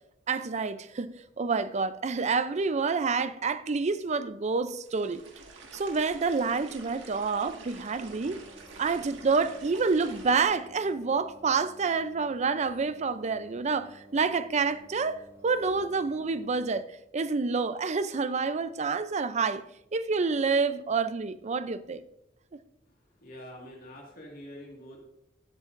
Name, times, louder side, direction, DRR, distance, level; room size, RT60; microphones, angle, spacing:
voice 1, 0.3-5.2 5.7-8.4 8.8-16.8 17.1-19.7 19.9-22.0, right 4 dB, 35° right, 0.5 m, -28 dB
sound 1, 4.8-10.4, right 3 dB, 75° right, 1.8 m, -48 dB
sound 2, 8.0-16.8, right 1 dB, 15° right, 3.8 m, -53 dB
voice 2, 22.9-25.0, equal, 50° left, 2.0 m, -46 dB
16.5 x 8.3 x 2.6 m
head